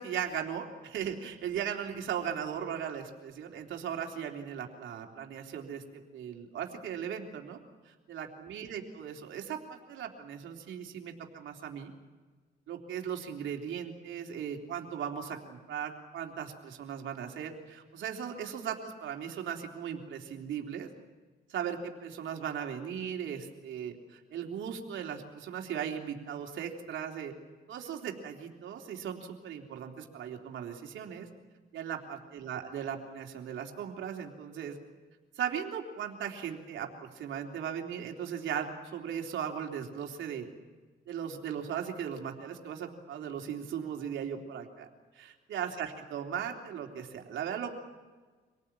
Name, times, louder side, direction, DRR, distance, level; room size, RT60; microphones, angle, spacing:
voice 1, 0.0-7.6 7.9-11.9 12.7-20.9 21.5-27.3 27.7-31.3 31.7-34.8 35.4-40.5 41.1-44.9 45.2-47.7, right 8 dB, 75° right, 2 dB, 3.5 m, -38 dB
26.0 x 18.5 x 9.0 m, 1.3 s
cardioid pair, 90°, 20 cm